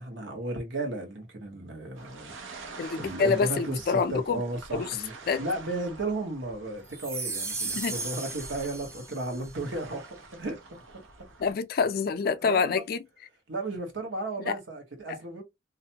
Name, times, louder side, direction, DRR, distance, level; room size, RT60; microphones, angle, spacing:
voice 1, 0.0-5.1 5.4-10.6 10.9-11.0 12.4-12.8 13.5-15.4, right 2 dB, 75° right, 1.1 m, -34 dB
sound 1, 1.9-11.5, right 3 dB, 90° right, 0.7 m, -47 dB
voice 2, 2.8-4.4 4.7-5.0 5.3-5.4 7.8-7.9 11.4-13.0 14.5-14.6 15.1-15.2, left 5 dB, 50° left, 0.3 m, -27 dB
Shiny Object, 6.9-9.5, right 4 dB, 15° right, 0.4 m, -35 dB
2.5 x 2.1 x 2.7 m
head